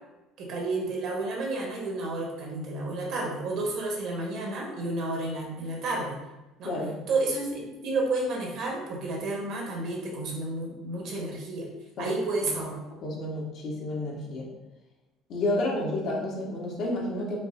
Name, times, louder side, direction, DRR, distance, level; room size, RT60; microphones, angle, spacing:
voice 1, 0.4-6.2 6.6-6.7 7.1-11.7 12.0-12.8, right 2 dB, 50° right, 0 dB, 1.1 m, -31 dB
voice 2, 6.6-7.0 12.0-12.1 13.0-14.5 15.3-17.4, left 1 dB, 50° left, -3 dB, 1.2 m, -30 dB
5.2 x 2.0 x 4.2 m, 1.0 s
cardioid pair, 150°, 0 cm